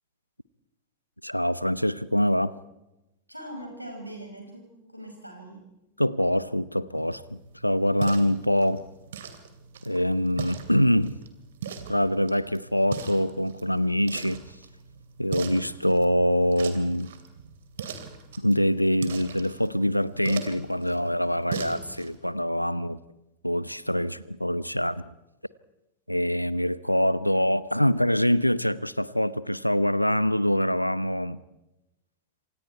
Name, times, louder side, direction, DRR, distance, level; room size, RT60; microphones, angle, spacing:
voice 1, 1.2-2.5 6.0-8.8 9.8-11.2 11.9-14.4 15.2-17.1 18.4-23.0 23.4-25.0 26.1-31.4, equal, 90° left, 18 dB, 0.8 m, -24 dB
voice 2, 3.3-5.6, right 1 dB, 90° right, 2 dB, 6.2 m, -41 dB
sound 1, 6.9-22.2, right 7 dB, 60° right, 2.8 m, -40 dB
27.5 x 26.0 x 4.6 m, 0.96 s
figure-of-eight pair, 90°, 0 cm